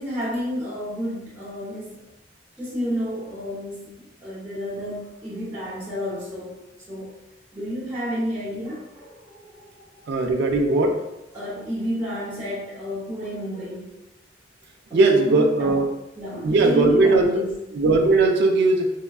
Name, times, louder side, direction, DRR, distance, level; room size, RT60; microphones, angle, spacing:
voice 1, 0.0-2.1 2.6-7.1 7.5-10.0 11.3-13.9 14.9-15.8 16.2-17.6, equal, 10° right, -11 dB, 0.9 m, -31 dB
voice 2, 10.1-11.0 14.9-15.9 16.4-17.4 17.7-18.9, right 3 dB, 60° right, 2 dB, 0.4 m, -19 dB
4.4 x 2.2 x 2.3 m, 0.94 s
head